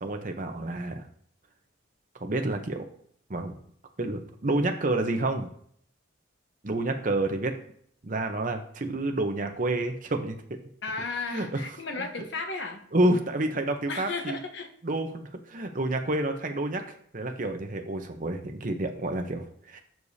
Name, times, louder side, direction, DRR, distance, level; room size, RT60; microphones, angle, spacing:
voice 1, 0.0-1.0 2.1-2.9 3.3-3.5 4.0-5.5 6.6-7.6 8.0-10.4 11.3-11.6 12.0-12.3 12.9-14.3 14.8-19.8, right 2 dB, 45° right, 5 dB, 0.8 m, -29 dB
voice 2, 10.8-12.8 13.9-14.7, left 3 dB, 60° left, 4 dB, 1.1 m, -34 dB
12.0 x 4.9 x 2.8 m, 0.64 s
head